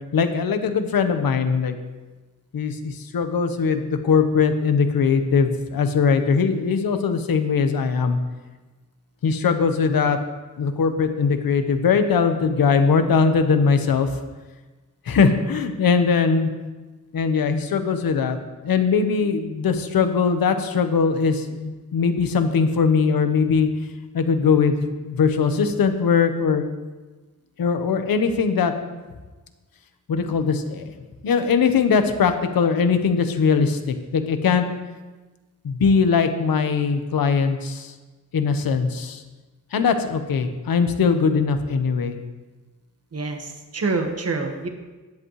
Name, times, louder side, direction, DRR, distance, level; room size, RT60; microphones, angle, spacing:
voice 1, 0.1-1.7 2.5-8.2 9.2-10.2 10.6-14.1 15.0-16.5 17.1-18.4 18.6-23.7 24.1-26.7 27.6-28.7 30.1-30.9 31.2-34.7 35.6-37.9 38.3-39.2 39.7-42.2, left 5 dB, 80° left, 7 dB, 1.2 m, -20 dB
voice 2, 43.1-44.7, right 3 dB, 45° right, 3 dB, 1.6 m, -26 dB
16.0 x 11.0 x 3.3 m, 1.3 s
cardioid pair, 95°, 35 cm